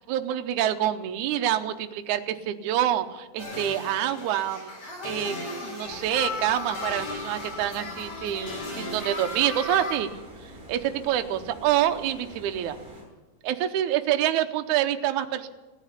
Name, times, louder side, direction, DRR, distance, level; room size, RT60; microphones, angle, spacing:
voice 1, 0.1-4.7 5.0-10.1 10.7-12.8 13.4-15.5, right 12 dB, 80° right, 7 dB, 1.8 m, -27 dB
sound 1, 3.4-10.0, left 3 dB, 45° left, 5.5 m, -35 dB
Stream, 5.9-13.0, equal, ahead, 7.5 m, -46 dB
16.5 x 10.0 x 8.3 m, 1.1 s
omnidirectional pair, 4.4 m